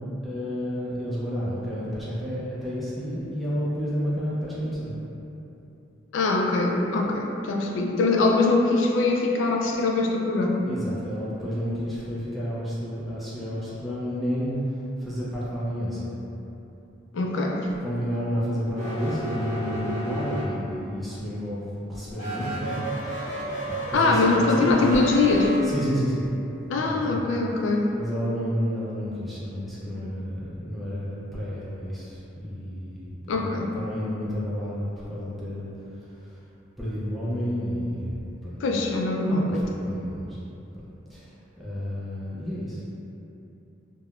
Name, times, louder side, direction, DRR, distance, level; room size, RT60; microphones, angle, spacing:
voice 1, 0.2-4.9 10.7-14.5 15.0-16.1 17.8-23.2 23.7-24.9 25.6-26.3 26.8-27.2 27.9-35.7 36.0-36.4 36.8-38.2 38.4-38.6 39.3-40.4 41.1-42.8, equal, ahead, -10 dB, 0.4 m, -31 dB
voice 2, 6.1-10.7 17.1-17.7 23.9-25.5 26.7-27.9 33.3-33.7 38.6-39.6, left 3 dB, 80° left, 1 dB, 0.3 m, -22 dB
sound 1, 18.7-20.9 22.1-25.6, right 1 dB, 40° left, 1.4 m, -32 dB
3.5 x 2.1 x 2.3 m, 2.9 s
head